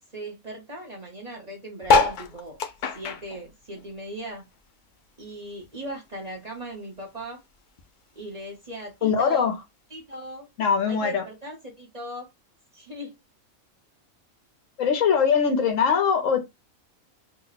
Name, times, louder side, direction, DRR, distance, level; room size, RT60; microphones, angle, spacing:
voice 1, 0.1-2.6 2.9-4.5 5.2-7.4 8.2-9.5 9.9-10.5 10.9-12.3 12.7-13.1, right 1 dB, 35° right, 0.9 m, -38 dB
sound 1, 1.8-4.6 4.9-6.5 6.9-7.0 7.2-7.3 7.5-7.9 8.7-8.8, left 4 dB, 85° left, 0.4 m, -25 dB
voice 2, 9.0-9.5 10.6-11.2 14.8-16.4, left 6 dB, 70° left, 1.1 m, -21 dB
2.8 x 2.1 x 3.9 m
omnidirectional pair, 1.4 m